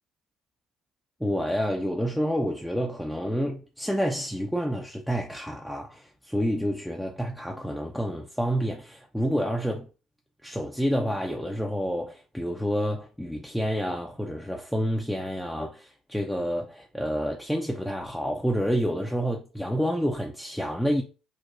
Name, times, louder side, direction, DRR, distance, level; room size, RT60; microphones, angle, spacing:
voice 1, 1.2-9.9 10.4-21.0, equal, ahead, 0.4 m, -29 dB
2.9 x 2.1 x 2.4 m
hypercardioid pair, 55°, 0 cm